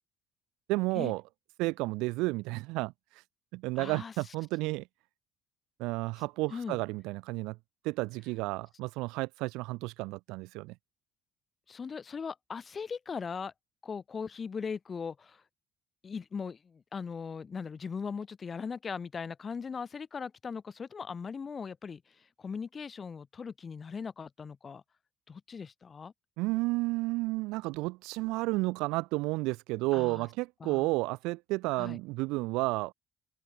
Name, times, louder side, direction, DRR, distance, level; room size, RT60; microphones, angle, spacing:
voice 1, 0.7-1.2 1.6-3.2 3.5-4.9 5.8-7.6 7.8-10.7 26.4-32.9, right 23 dB, 85° right, 1.2 m, -32 dB
voice 2, 3.8-4.1 6.5-6.8 11.7-13.5 13.8-15.4 16.0-22.0 22.4-24.8 25.3-26.1 29.9-30.3 30.6-30.9 31.8-32.0, left 5 dB, 30° left, 4.6 m, -39 dB
open air
cardioid pair, 115°, 0 cm